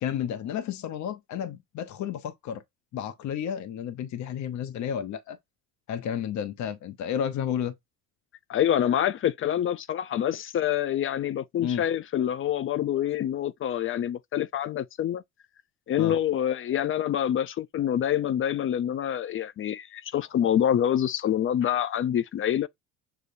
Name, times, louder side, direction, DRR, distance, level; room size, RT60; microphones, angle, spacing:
voice 1, 0.0-2.6 2.9-5.4 5.9-7.7 11.6-11.8 16.0-16.2, left 9 dB, 50° left, 0.8 m, -32 dB
voice 2, 8.5-15.2 15.9-22.7, left 10 dB, 35° left, 0.4 m, -26 dB
6.8 x 2.4 x 2.6 m
supercardioid pair, 85°, 36 cm